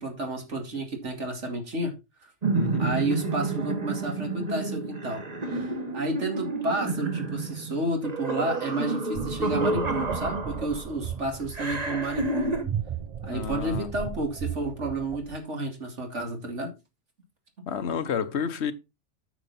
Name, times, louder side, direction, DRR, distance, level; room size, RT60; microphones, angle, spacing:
voice 1, 0.0-1.9 2.2-2.3 2.8-5.2 5.5-12.6 13.2-16.7, right 2 dB, 75° right, 2.7 m, -31 dB
sound 1, 2.4-11.0 11.5-12.6, right 3 dB, 35° right, 1.5 m, -30 dB
voice 2, 2.5-3.0 13.2-13.9 17.7-18.7, left 7 dB, 65° left, 1.1 m, -30 dB
sound 2, 9.1-15.4, right 8 dB, 55° right, 0.4 m, -36 dB
9.1 x 6.7 x 4.1 m
omnidirectional pair, 1.2 m